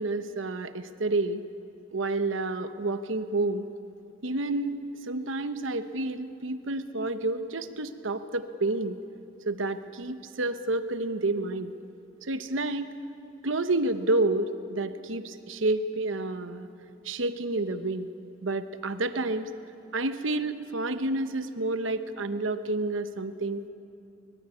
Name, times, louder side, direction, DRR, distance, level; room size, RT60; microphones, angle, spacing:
voice 1, 0.0-1.4 1.9-3.7 4.2-9.0 9.4-11.7 12.2-12.9 13.4-16.7 17.0-18.1 18.4-19.5 19.9-23.7, right 2 dB, 80° right, 10 dB, 1.0 m, -29 dB
23.5 x 20.5 x 9.7 m, 2.8 s
head